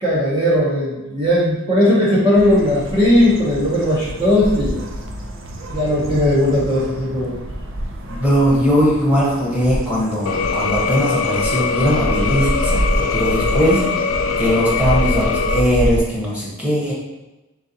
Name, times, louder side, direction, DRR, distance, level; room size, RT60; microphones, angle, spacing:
voice 1, 0.0-4.8 5.7-7.3, left 1 dB, 20° right, -7 dB, 0.7 m, -17 dB
sound 1, 2.3-16.0, equal, 60° right, 0.5 m, -27 dB
voice 2, 8.1-13.8 14.4-16.9, equal, 5° right, -6 dB, 1.1 m, -19 dB
sound 2, 10.3-15.6, left 5 dB, 75° left, 0.4 m, -22 dB
3.9 x 3.6 x 2.8 m, 1.0 s
head